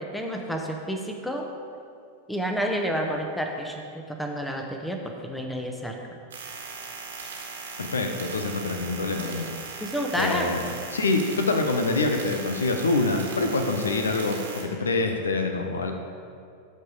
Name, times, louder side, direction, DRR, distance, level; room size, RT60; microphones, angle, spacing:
voice 1, 0.1-1.5 2.3-6.0 9.8-10.5, equal, 5° left, 2 dB, 0.9 m, -29 dB
sound 1, 6.3-14.6, right 4 dB, 65° right, 1.6 m, -38 dB
voice 2, 7.8-9.8 10.2-15.9, left 3 dB, 70° left, 5 dB, 0.7 m, -26 dB
13.0 x 4.4 x 5.0 m, 2.3 s
figure-of-eight pair, 90°, 0 cm